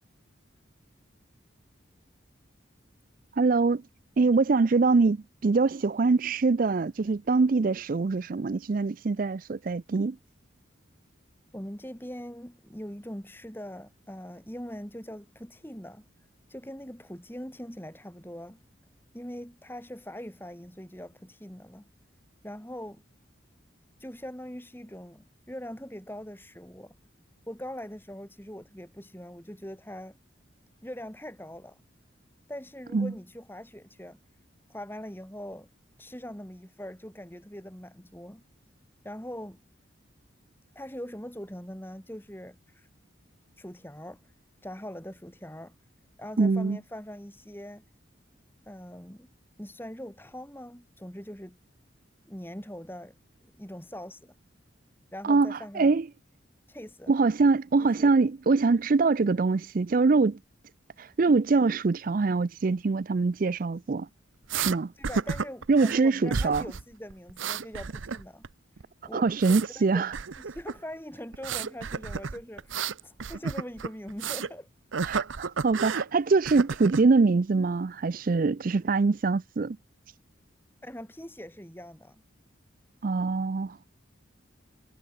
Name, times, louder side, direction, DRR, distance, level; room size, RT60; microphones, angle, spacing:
voice 1, 3.4-3.8 4.2-10.2 32.9-33.1 46.4-46.8 55.2-56.1 57.1-60.4 61.0-64.1 64.5-64.9 65.7-66.6 69.1-70.1 75.0-79.8 83.0-83.9, right 4 dB, 45° right, 0.4 m, -24 dB
voice 2, 11.5-16.1 16.5-18.6 19.1-21.8 22.4-23.0 24.0-27.0 27.5-30.2 30.8-31.8 32.5-34.2 34.7-35.7 36.0-38.4 39.0-39.6 40.7-42.9 43.6-44.3 44.6-45.7 46.2-47.8 48.6-49.3 49.6-51.6 52.3-53.1 53.6-54.3 55.1-55.9 56.7-57.1 57.8-58.1 64.9-68.5 69.1-69.3 69.7-70.0 70.4-74.7 80.8-82.2, equal, 10° left, 5.0 m, -42 dB
sound 1, 64.5-64.8 65.0-66.0 66.3-66.8 67.1-68.5 68.8-69.7 70.1-70.8 71.3-74.5 74.9-76.1 76.5-77.1, right 5 dB, 80° right, 0.8 m, -32 dB
head